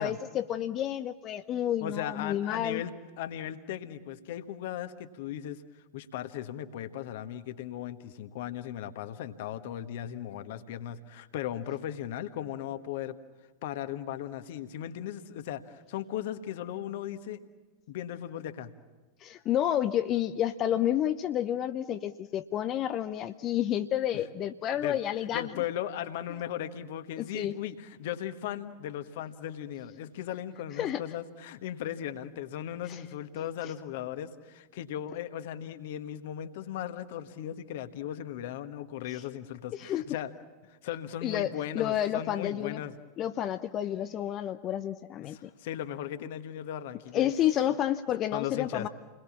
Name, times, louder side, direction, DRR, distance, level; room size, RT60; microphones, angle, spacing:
voice 1, 0.0-2.8 19.2-25.6 27.2-27.5 30.8-31.0 32.9-33.0 39.1-39.2 39.7-40.0 41.2-42.8 43.2-45.5 47.1-48.9, left 11 dB, 35° left, 9 dB, 0.7 m, -30 dB
voice 2, 1.8-5.6 5.9-13.2 13.6-17.4 17.9-18.7 24.7-25.0 25.3-40.4 40.7-42.9 45.2-47.3 48.3-48.9, left 11 dB, 55° left, 10 dB, 1.5 m, -37 dB
29.5 x 21.5 x 7.4 m, 1.3 s
figure-of-eight pair, 90°, 0 cm